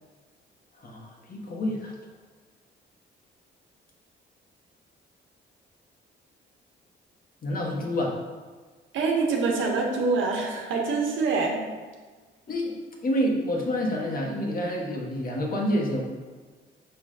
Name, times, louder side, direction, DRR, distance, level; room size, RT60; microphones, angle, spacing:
voice 1, 0.8-1.9 7.4-8.1 12.5-12.7 13.0-16.0, equal, 45° left, -1 dB, 1.5 m, -28 dB
voice 2, 8.9-11.6, right 4 dB, 75° right, 0 dB, 1.3 m, -25 dB
5.5 x 3.5 x 5.5 m, 1.4 s
cardioid pair, 90°, 20 cm